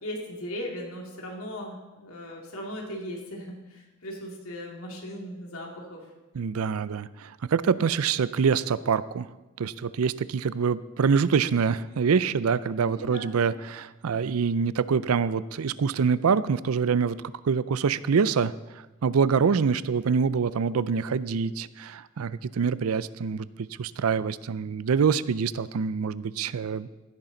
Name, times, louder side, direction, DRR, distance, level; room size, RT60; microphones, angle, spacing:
voice 1, 0.0-6.0 12.8-13.4, equal, 90° left, -1 dB, 2.4 m, -38 dB
voice 2, 6.3-9.3 9.6-17.2 17.4-18.5 19.0-26.9, right 6 dB, 85° right, 17 dB, 0.5 m, -25 dB
16.5 x 10.5 x 3.9 m, 1.1 s
head